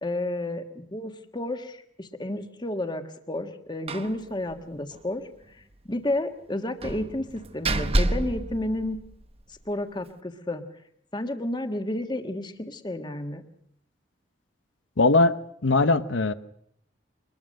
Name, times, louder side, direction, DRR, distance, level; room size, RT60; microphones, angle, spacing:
voice 1, 0.0-5.2 5.8-9.0 9.5-10.6 11.1-13.4, left 1 dB, 25° left, 1.5 m, -31 dB
Slam, 3.9-4.2 4.5-4.6 4.9-5.0 6.8-9.4, right 1 dB, 30° right, 1.0 m, -28 dB
voice 2, 15.0-16.3, left 3 dB, 85° left, 0.9 m, -21 dB
23.5 x 20.5 x 6.5 m
head